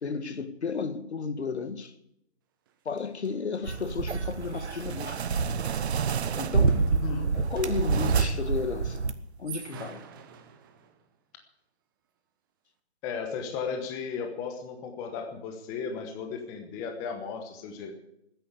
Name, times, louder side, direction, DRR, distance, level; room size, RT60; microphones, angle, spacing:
voice 1, 0.0-1.9 2.9-5.2 6.4-6.9 7.3-9.0 9.4-10.0, left 5 dB, 75° left, 2.1 m, -33 dB
sound 1, 2.7-2.8 3.0-8.6 9.3-11.1, right 8 dB, 20° right, 1.1 m, -50 dB
sound 2, 3.6-9.1, right 5 dB, 90° right, 1.5 m, -28 dB
sound 3, 4.4-6.9 7.4-8.6, right 8 dB, 70° right, 0.7 m, -33 dB
voice 2, 6.8-7.3 13.0-17.9, left 5 dB, 10° left, 1.0 m, -35 dB
14.5 x 10.0 x 8.2 m
hypercardioid pair, 160°, 34 cm